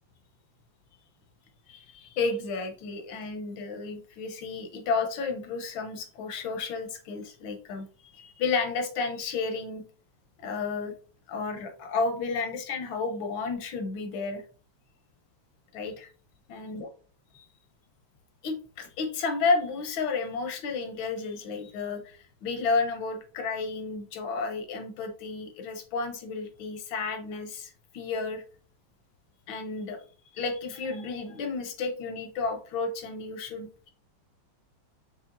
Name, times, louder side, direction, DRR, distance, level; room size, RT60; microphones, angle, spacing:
voice 1, 1.7-7.9 8.1-9.8 10.4-10.9 11.3-14.4 15.7-16.1 16.5-16.9 17.3-17.4 18.4-28.4 29.5-30.0 30.3-33.9, left 4 dB, 85° left, 6 dB, 1.6 m, -32 dB
6.7 x 3.1 x 2.5 m, 0.41 s
omnidirectional pair, 2.1 m